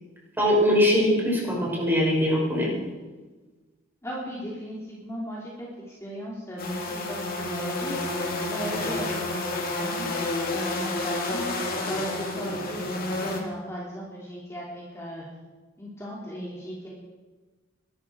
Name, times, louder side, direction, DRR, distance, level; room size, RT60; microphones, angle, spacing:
voice 1, 0.4-2.7, equal, 10° right, -4 dB, 6.0 m, -22 dB
voice 2, 4.0-5.7 6.0-10.1 10.5-11.5 11.9-15.2 15.8-16.9, equal, 15° left, -5 dB, 3.0 m, -36 dB
sound 1, 6.6-13.4, left 2 dB, 45° left, 2.7 m, -30 dB
22.5 x 13.0 x 4.8 m, 1.3 s
head